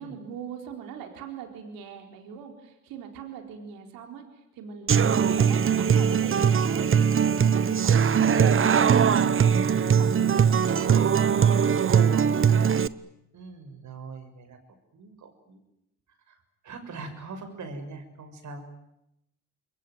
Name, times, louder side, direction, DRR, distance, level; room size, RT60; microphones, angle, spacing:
voice 1, 0.0-9.3 9.8-12.5, right 7 dB, 85° right, 4 dB, 4.3 m, -40 dB
Human voice / Acoustic guitar, 4.9-12.9, right 7 dB, 40° right, 1.0 m, -21 dB
voice 2, 7.8-8.4 13.3-15.6 16.1-18.7, right 3 dB, 60° right, 7 dB, 6.6 m, -42 dB
28.0 x 22.5 x 9.3 m, 0.85 s
supercardioid pair, 80°, 34 cm